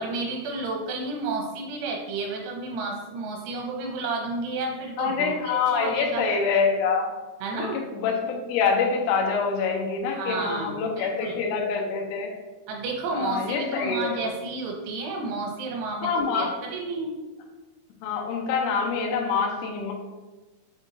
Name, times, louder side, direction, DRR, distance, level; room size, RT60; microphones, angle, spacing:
voice 1, 0.0-6.2 7.4-7.8 10.1-11.4 12.7-17.1, right 3 dB, 85° right, -1 dB, 3.1 m, -31 dB
voice 2, 5.0-7.1 7.5-12.3 13.1-14.2 16.0-16.5 18.0-19.9, left 5 dB, 80° left, 0 dB, 2.9 m, -25 dB
7.1 x 2.8 x 2.6 m, 1.2 s
omnidirectional pair, 5.7 m